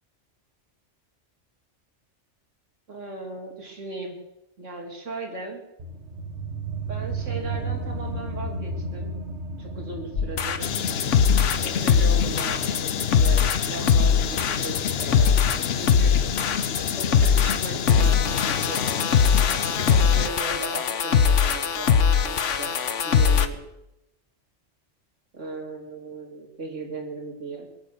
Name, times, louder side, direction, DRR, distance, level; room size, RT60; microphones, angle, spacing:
voice 1, 2.9-4.2 4.6-5.7 6.9-9.1 9.6-10.6 11.6-16.2 16.9-18.8 19.8-22.8 23.0-23.6 25.3-27.7, right 2 dB, 85° right, 0 dB, 3.2 m, -37 dB
sound 1, 5.8-16.9, right 3 dB, 70° right, 1.8 m, -35 dB
sound 2, 10.2-23.5, left 7 dB, 85° left, 1.2 m, -21 dB
sound 3, 10.6-20.3, left 7 dB, 60° left, 0.9 m, -29 dB
23.0 x 8.3 x 6.7 m, 0.88 s
omnidirectional pair, 1.2 m